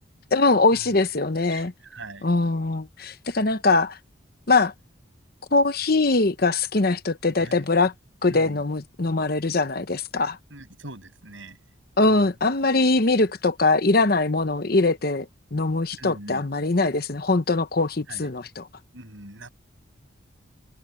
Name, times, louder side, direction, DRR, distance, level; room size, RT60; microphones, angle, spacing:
voice 1, 0.3-1.7 2.2-4.0 4.5-4.7 5.5-7.9 8.2-10.4 12.0-18.6, left 3 dB, 50° left, 0.9 m, -22 dB
voice 2, 1.5-2.3 7.4-7.7 8.3-8.6 10.5-11.6 12.0-12.4 15.9-16.5 18.1-18.3 18.9-19.5, right 2 dB, 70° right, 7.9 m, -42 dB
head